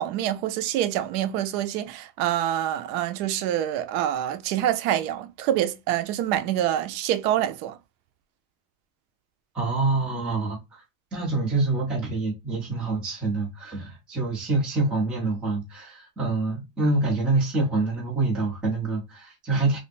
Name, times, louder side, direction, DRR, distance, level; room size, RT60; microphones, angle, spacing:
voice 1, 0.0-7.8, right 11 dB, 70° right, 0.6 m, -26 dB
voice 2, 9.5-10.8 11.1-19.8, right 3 dB, ahead, 0.3 m, -26 dB
3.2 x 2.5 x 2.4 m
cardioid pair, 180°, 50 cm